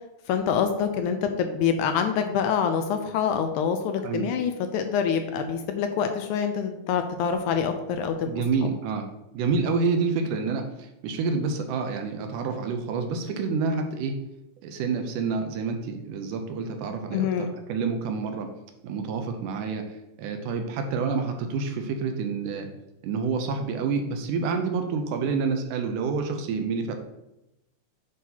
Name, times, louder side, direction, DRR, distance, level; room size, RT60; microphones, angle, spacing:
voice 1, 0.3-8.3 17.1-17.5, left 7 dB, 80° left, 6 dB, 1.8 m, -26 dB
voice 2, 8.3-9.1 9.3-14.2 14.6-18.5 18.8-22.7 23.0-27.0, right 4 dB, 80° right, 5 dB, 2.2 m, -28 dB
9.1 x 3.9 x 2.8 m, 0.90 s
omnidirectional pair, 3.7 m